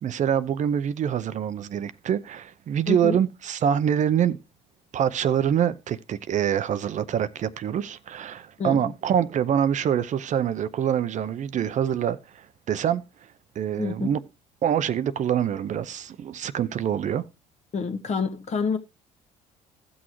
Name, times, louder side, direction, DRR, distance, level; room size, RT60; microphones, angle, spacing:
voice 1, 0.0-4.4 4.9-13.0 13.6-14.2 14.6-17.2, right 9 dB, 50° right, 0.6 m, -25 dB
voice 2, 2.9-3.2 8.6-8.9 13.8-14.1 17.7-18.8, left 5 dB, 45° left, 1.3 m, -28 dB
15.5 x 6.3 x 3.0 m
supercardioid pair, 75°, 16 cm